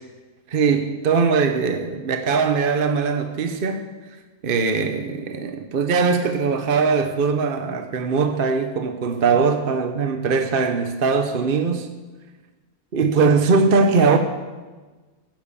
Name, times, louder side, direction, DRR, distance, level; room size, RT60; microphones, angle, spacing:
voice 1, 0.5-3.9 4.4-11.9 12.9-14.2, right 5 dB, 45° right, 0.9 m, -20 dB
15.5 x 7.7 x 8.2 m
omnidirectional pair, 1.7 m